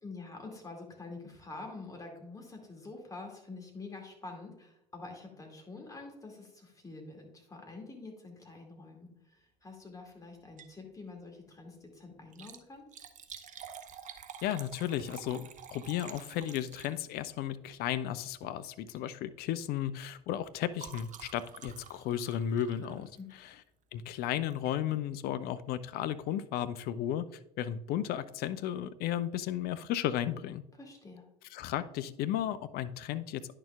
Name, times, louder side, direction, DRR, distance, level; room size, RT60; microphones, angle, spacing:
voice 1, 0.0-12.8 23.2-23.3 30.8-31.2, left 3 dB, 15° left, 1 dB, 2.4 m, -47 dB
Liquid, 10.4-10.8 11.2-11.3 12.2-17.3 18.3-18.6 18.9-19.2 19.5-23.6 24.5-24.8 25.3-25.4 25.6-25.7, right 7 dB, 35° right, 0.7 m, -50 dB
voice 2, 14.4-23.1 23.9-27.2 27.6-30.6 31.5-33.5, left 11 dB, 50° left, 13 dB, 0.5 m, -34 dB
10.0 x 6.5 x 2.4 m, 0.84 s
figure-of-eight pair, 65°, 21 cm